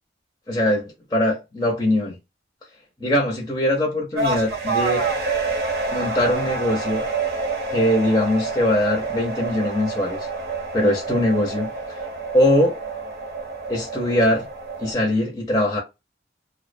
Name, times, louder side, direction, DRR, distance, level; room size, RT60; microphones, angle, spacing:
voice 1, 0.5-2.2 3.0-5.0 5.9-7.0 7.7-10.3 10.7-11.7 12.3-12.8 13.7-14.4 14.8-15.8, left 1 dB, 20° left, 0.6 m, -21 dB
sound 1, 4.1-14.9, right 3 dB, 60° right, 0.7 m, -28 dB
2.3 x 2.1 x 2.5 m
head